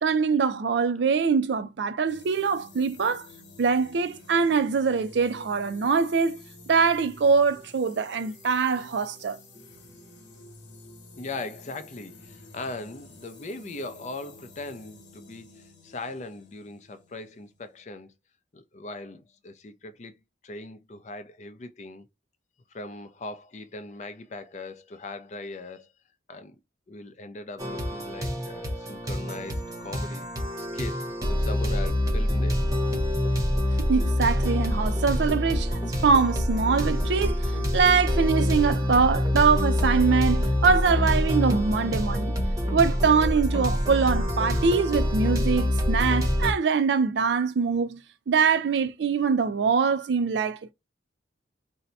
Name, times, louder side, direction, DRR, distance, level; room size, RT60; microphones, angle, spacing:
voice 1, 0.0-3.3 3.6-6.4 6.7-9.4 33.9-37.4 37.7-42.3 42.7-48.0 48.3-50.7, right 5 dB, 75° right, 0.4 m, -23 dB
sound 1, 2.1-17.8, left 2 dB, 80° left, 1.1 m, -50 dB
voice 2, 11.2-18.1 18.5-20.2 20.4-22.1 22.7-25.9 26.3-26.6 26.9-30.3 30.6-32.6, left 2 dB, 40° left, 0.5 m, -39 dB
sound 2, 27.6-46.5, left 1 dB, 20° right, 0.8 m, -26 dB
2.7 x 2.1 x 4.0 m
head